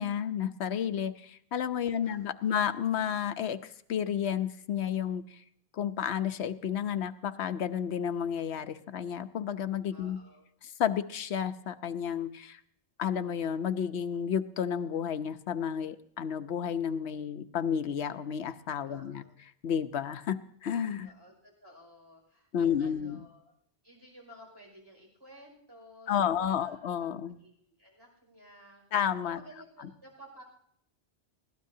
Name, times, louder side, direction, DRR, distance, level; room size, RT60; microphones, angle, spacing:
voice 1, 0.0-5.4 5.7-10.2 10.8-12.6 13.0-19.2 19.6-21.1 22.5-23.2 26.1-27.4 28.9-29.4, left 8 dB, 80° left, 10 dB, 1.0 m, -31 dB
voice 2, 1.8-2.6 9.9-10.4 18.9-19.3 21.0-23.5 23.8-27.5 27.8-28.8 29.2-30.4, equal, 20° right, -1 dB, 5.6 m, -54 dB
21.0 x 16.0 x 2.8 m, 0.68 s
omnidirectional pair, 1.1 m